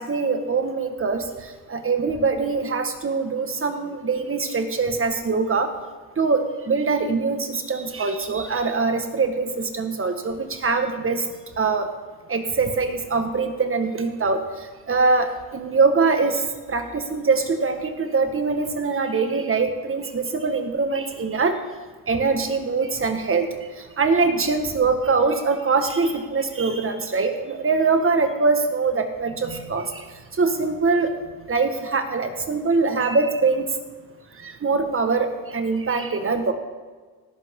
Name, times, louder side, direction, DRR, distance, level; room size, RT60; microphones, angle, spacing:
voice 1, 0.0-1.2 1.7-5.7 6.2-11.2 11.6-11.9 12.3-14.4 14.9-16.4 16.7-21.6 22.1-23.5 24.0-30.0 30.4-31.1 31.5-33.6 34.4-36.5, right 4 dB, 35° right, 6 dB, 1.6 m, -23 dB
17.5 x 11.0 x 3.8 m, 1.4 s
cardioid pair, 100°, 40 cm